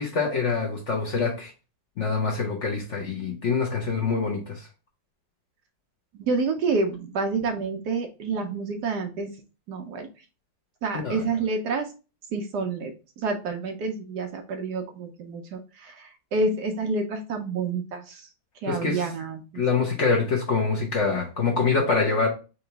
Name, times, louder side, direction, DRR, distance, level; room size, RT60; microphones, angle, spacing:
voice 1, 0.0-1.5 2.0-4.7 10.9-11.2 18.7-19.1 19.5-22.3, left 4 dB, 55° left, 0 dB, 0.8 m, -25 dB
voice 2, 6.1-9.3 9.7-10.1 10.8-11.9 12.3-18.3 18.6-19.6, right 3 dB, 70° right, 4 dB, 1.1 m, -28 dB
3.9 x 3.0 x 4.4 m, 0.32 s
omnidirectional pair, 2.2 m